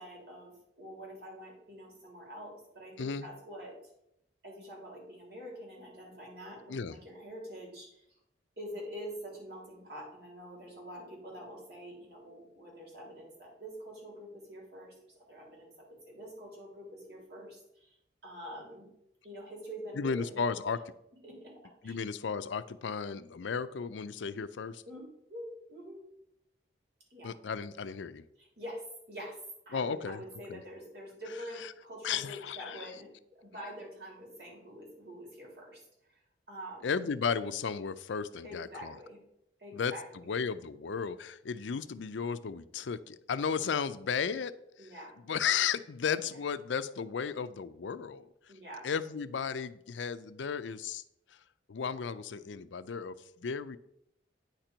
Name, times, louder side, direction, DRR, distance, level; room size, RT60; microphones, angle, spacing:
voice 1, 0.0-3.7 4.4-8.0 8.6-14.9 15.3-17.9 18.2-18.9 19.2-20.5 21.2-21.5 21.8-21.9 24.9-26.0 27.1-27.3 28.4-28.8 29.1-29.4 29.6-35.8 36.1-36.2 36.5-37.0 38.4-39.2 39.6-40.2 44.8-45.1 48.5-48.9, equal, 60° right, -2 dB, 3.3 m, -46 dB
voice 2, 19.9-20.8 21.8-24.8 27.2-28.2 29.7-30.2 30.5-30.6 32.0-32.9 36.8-39.0 39.7-39.9 40.3-44.5 44.8-44.9 45.2-48.3 48.8-51.0 51.7-53.8, left 6 dB, 90° left, 14 dB, 0.5 m, -34 dB
9.5 x 4.5 x 5.1 m, 0.78 s
head